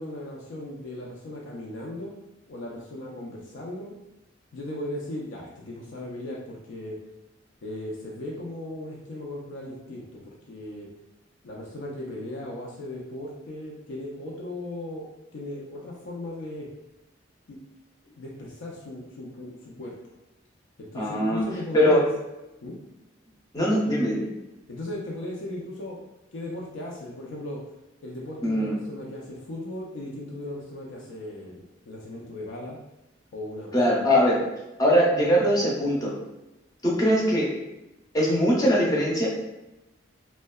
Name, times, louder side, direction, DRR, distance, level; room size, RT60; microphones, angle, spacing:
voice 1, 0.0-2.1 2.5-3.9 4.5-7.0 7.6-10.9 11.4-15.1 15.3-16.7 17.5-17.6 18.0-19.9 20.8-22.1 22.6-22.8 24.7-26.0 26.3-27.6 28.0-32.8 33.3-34.0, left 1 dB, 85° left, -3 dB, 0.4 m, -37 dB
voice 2, 20.9-21.4 21.7-22.0 23.5-24.2 28.4-28.7 33.7-34.4 34.8-36.1 36.8-37.5 38.1-39.3, equal, 20° left, -4 dB, 0.5 m, -21 dB
2.6 x 2.1 x 2.2 m, 0.96 s
head